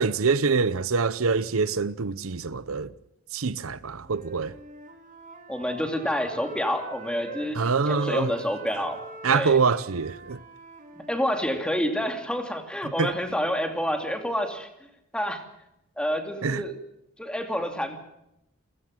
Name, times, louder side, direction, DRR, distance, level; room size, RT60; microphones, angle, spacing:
voice 1, 0.0-2.9 3.3-4.5 7.6-8.3 9.2-10.4 13.0-13.1 16.4-16.6, right 5 dB, 80° right, 0.8 m, -25 dB
Wind instrument woodwind instrument, 4.0-7.5 7.8-12.0, right 2 dB, 35° right, 3.6 m, -44 dB
voice 2, 5.5-9.0 9.3-9.6 11.0-14.7 15.1-15.4 16.0-16.7 17.2-18.0, equal, 5° left, 2.6 m, -28 dB
28.5 x 16.0 x 7.6 m
head